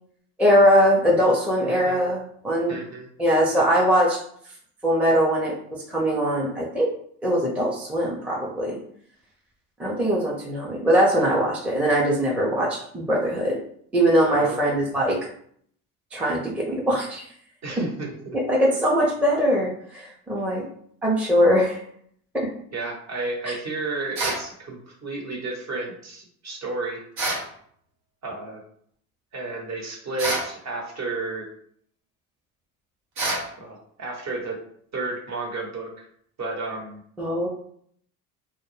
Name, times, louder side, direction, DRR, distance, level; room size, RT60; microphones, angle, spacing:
voice 1, 0.4-2.8 3.2-4.2 4.8-5.5 5.9-6.9 7.2-8.8 9.8-13.6 13.9-15.2 16.1-17.2 18.5-20.6 21.0-21.8 22.3-22.5 37.2-37.5, equal, 5° right, -4 dB, 0.5 m, -21 dB
voice 2, 1.6-2.0 2.7-3.1 14.3-14.8 17.6-18.4 22.7-27.0 28.2-28.6 29.3-31.5 33.6-34.6 34.9-36.1 36.4-37.0, right 3 dB, 40° right, 1 dB, 0.9 m, -32 dB
sound 1, 24.1-24.5 27.2-27.5 30.2-30.5 33.2-33.5, right 2 dB, 85° right, 1.2 m, -26 dB
2.1 x 2.1 x 3.1 m, 0.62 s
hypercardioid pair, 70°, 44 cm